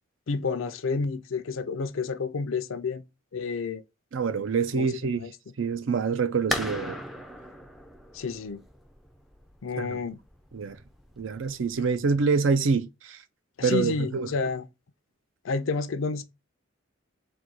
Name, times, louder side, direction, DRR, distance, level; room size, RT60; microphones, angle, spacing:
voice 1, 0.3-3.0 3.3-3.8 4.7-5.3 8.1-8.6 9.6-10.2 13.6-14.7 15.4-16.2, left 4 dB, 75° left, 0.5 m, -30 dB
voice 2, 4.1-5.3 5.6-7.0 9.8-10.0 10.5-10.8 11.2-13.2 13.6-14.3, right 5 dB, 70° right, 0.5 m, -26 dB
sound 1, 6.5-12.0, left 1 dB, ahead, 0.4 m, -37 dB
3.9 x 2.2 x 4.6 m
head